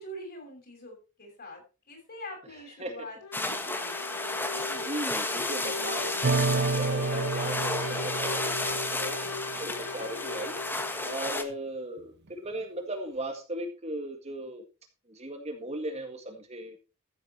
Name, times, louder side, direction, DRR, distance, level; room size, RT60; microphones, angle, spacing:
voice 1, 0.0-3.9 9.6-10.3, equal, 45° left, 2 dB, 6.4 m, -44 dB
sound 1, 3.2-11.6, left 4 dB, 70° left, 1.1 m, -39 dB
sound 2, 3.3-11.4, left 2 dB, 10° left, 1.3 m, -33 dB
voice 2, 4.7-9.2 9.6-10.5 11.0-14.6 15.1-16.8, right 1 dB, 30° right, 5 dB, 1.9 m, -37 dB
sound 3, 6.2-9.7, right 3 dB, 50° right, 0.9 m, -30 dB
14.5 x 8.4 x 4.4 m, 0.32 s
head